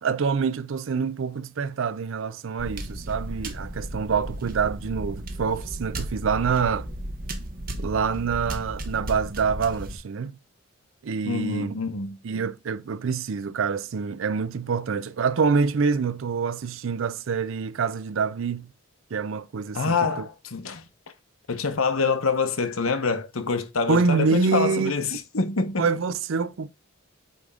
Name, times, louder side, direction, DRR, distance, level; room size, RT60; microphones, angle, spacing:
voice 1, 0.0-6.9 7.8-10.3 11.0-11.7 12.2-18.7 19.1-20.3 23.9-25.0 25.8-26.7, right 5 dB, 65° right, 0.4 m, -26 dB
sound 1, 2.6-10.0, right 1 dB, 45° right, 1.0 m, -34 dB
voice 2, 11.2-12.2 19.7-20.8 21.5-25.9, left 4 dB, 80° left, 1.0 m, -26 dB
8.4 x 3.5 x 3.7 m
head